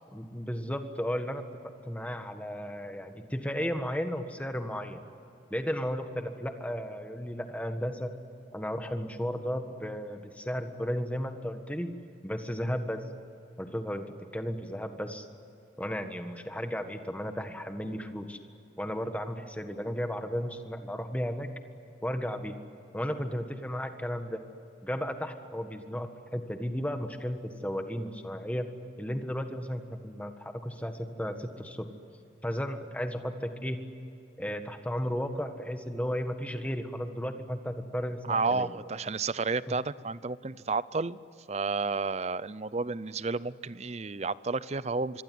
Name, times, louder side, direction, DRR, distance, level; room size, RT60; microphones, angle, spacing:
voice 1, 0.1-5.0 5.5-8.1 8.5-11.9 12.2-13.0 13.6-14.1 14.3-15.3 15.8-18.4 18.8-21.5 22.0-22.6 22.9-24.4 24.8-28.7 29.0-31.9 32.4-33.8 34.4-38.7 39.7-39.8, equal, 5° left, 6 dB, 1.6 m, -34 dB
voice 2, 38.3-41.2 41.5-45.2, right 4 dB, 35° right, 18 dB, 0.5 m, -31 dB
26.5 x 23.0 x 9.5 m, 2.6 s
head